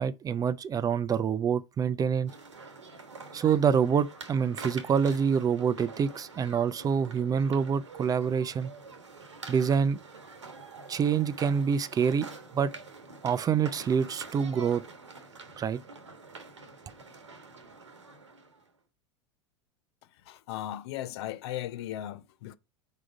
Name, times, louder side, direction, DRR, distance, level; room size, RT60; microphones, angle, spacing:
voice 1, 0.0-2.3 3.3-8.7 9.5-10.0 10.9-12.3 12.5-12.7 13.2-14.8 15.6-15.8, right 7 dB, 25° right, 0.5 m, -26 dB
sound 1, 2.3-18.7, right 4 dB, 85° right, 1.3 m, -46 dB
voice 2, 20.3-22.6, left 13 dB, 65° left, 0.6 m, -37 dB
4.9 x 4.9 x 4.7 m
hypercardioid pair, 85°, 15 cm